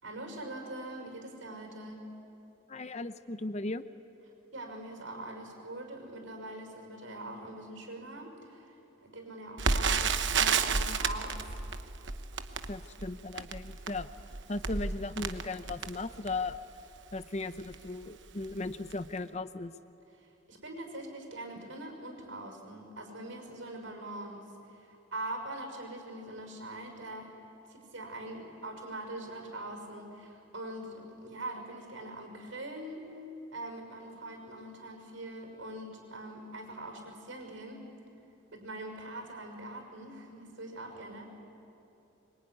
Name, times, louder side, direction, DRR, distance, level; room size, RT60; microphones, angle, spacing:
voice 1, 0.0-2.0 4.5-11.5 20.2-27.3 27.7-33.1 33.5-37.8 38.5-41.3, right 1 dB, 80° right, 3 dB, 6.0 m, -43 dB
voice 2, 2.7-3.9 12.7-14.1 14.5-16.6 17.1-19.7, left 2 dB, 35° left, 12 dB, 0.7 m, -37 dB
Crackle, 9.6-16.6 17.2-17.3 17.6-17.8 18.4-18.6 18.9-19.0, right 5 dB, 65° right, 1.1 m, -31 dB
24.5 x 23.5 x 9.8 m, 3.0 s
head